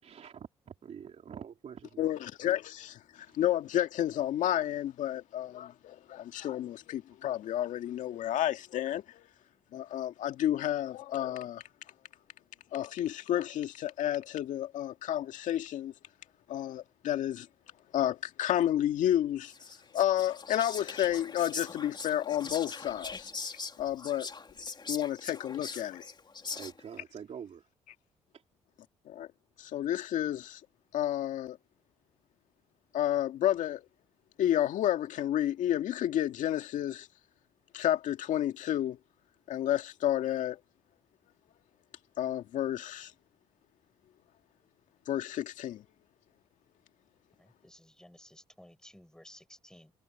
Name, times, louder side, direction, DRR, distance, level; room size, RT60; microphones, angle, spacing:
voice 1, 0.0-2.2 26.5-27.7 28.3-28.4, right 8 dB, 55° right, 3.0 m, -46 dB
voice 2, 2.0-9.3 9.7-11.6 12.7-15.9 16.5-17.5 17.9-19.5 19.9-23.3 23.8-24.3 24.9-26.0 29.1-29.3 29.6-30.6 30.9-31.6 32.9-33.8 34.4-37.1 37.7-39.0 39.5-40.6 42.2-43.1 45.1-45.8, left 12 dB, 75° left, 2.1 m, -31 dB
Whispering, 19.5-27.0, left 4 dB, 35° left, 3.6 m, -42 dB
voice 3, 47.4-49.9, left 1 dB, 5° left, 5.3 m, -55 dB
supercardioid pair, 60°, 13 cm